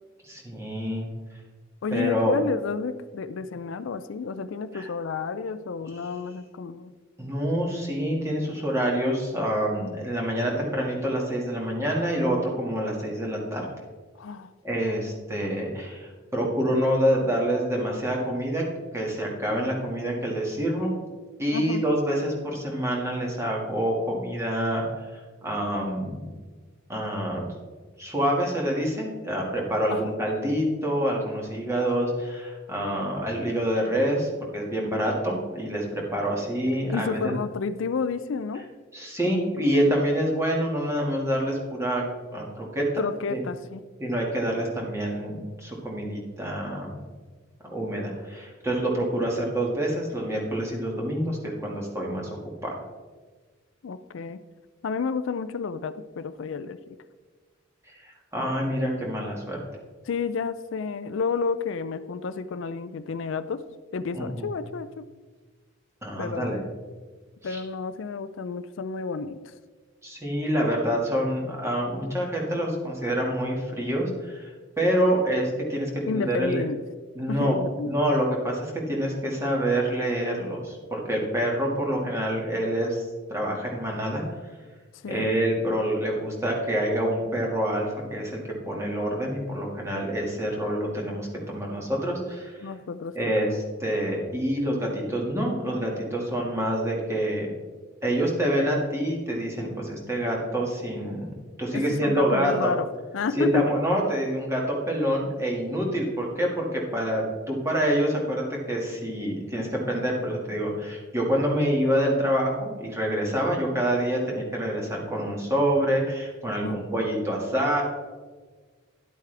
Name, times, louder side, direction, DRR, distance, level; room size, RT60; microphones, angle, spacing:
voice 1, 0.3-1.1 1.9-2.4 4.7-4.9 7.2-13.7 14.6-18.6 18.9-20.9 21.4-24.8 25.4-26.3 26.9-27.4 28.0-37.3 38.9-42.0 42.3-42.9 43.3-43.4 44.0-47.0 47.6-52.3 52.6-52.7 58.3-59.6 64.1-64.5 66.0-66.6 67.4-67.6 70.0-74.5 74.8-76.6 77.2-77.5 77.8-83.0 83.3-84.2 85.1-92.5 93.1-97.5 98.0-101.3 101.6-102.7 103.4-117.8, equal, 15° right, -2 dB, 1.9 m, -27 dB
voice 2, 1.8-6.9 14.2-14.5 21.5-21.8 29.9-30.1 36.9-38.6 43.0-43.8 53.8-54.4 54.8-56.8 60.1-63.6 63.9-65.1 66.2-66.5 67.4-69.5 76.1-76.8 77.3-77.9 85.0-85.3 92.6-93.3 101.7-102.9 103.1-103.7 116.6-116.8, left 5 dB, 70° left, 12 dB, 0.4 m, -30 dB
11.0 x 8.2 x 3.4 m, 1.4 s
head